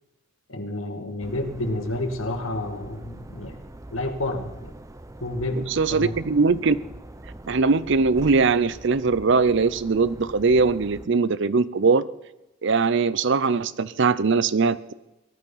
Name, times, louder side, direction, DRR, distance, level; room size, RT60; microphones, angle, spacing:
voice 1, 0.5-3.5 3.9-4.7 5.2-6.1, left 1 dB, 80° left, 5 dB, 2.2 m, -30 dB
sound 1, 1.2-11.1, right 1 dB, 15° right, 0.6 m, -42 dB
voice 2, 5.7-6.8 7.5-12.0 12.6-14.9, right 4 dB, 60° right, 17 dB, 0.6 m, -21 dB
18.5 x 12.0 x 5.7 m, 0.96 s
head